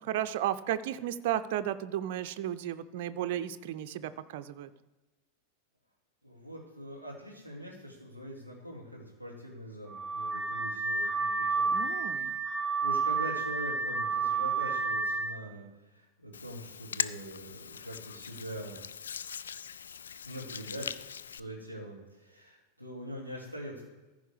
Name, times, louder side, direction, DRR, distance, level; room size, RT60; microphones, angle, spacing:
voice 1, 0.0-4.7 11.7-12.3, right 11 dB, 50° right, 10 dB, 0.5 m, -34 dB
voice 2, 6.2-11.7 12.8-15.7 15.9-18.8 20.3-21.0 21.3-23.8, equal, 90° left, -2 dB, 2.8 m, -43 dB
Car / Alarm, 9.9-15.4, right 4 dB, ahead, 0.8 m, -30 dB
Hands, 16.3-21.4, left 7 dB, 65° left, 0.3 m, -40 dB
14.5 x 4.9 x 4.9 m, 1.2 s
figure-of-eight pair, 90°, 0 cm